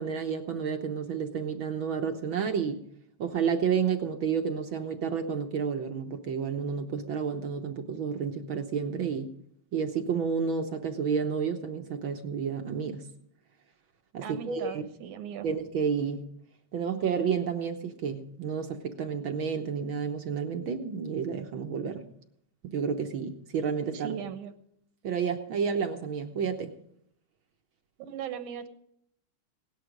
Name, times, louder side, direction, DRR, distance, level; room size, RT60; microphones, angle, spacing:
voice 1, 0.0-2.8 3.2-9.3 9.7-13.0 14.1-14.8 15.4-16.2 16.7-22.0 22.6-24.2 25.0-26.7, right 6 dB, 60° right, 6 dB, 1.4 m, -30 dB
voice 2, 14.2-15.5 23.9-24.5 28.0-28.7, right 8 dB, 80° right, 9 dB, 2.6 m, -38 dB
18.0 x 11.0 x 5.2 m, 0.71 s
omnidirectional pair, 3.3 m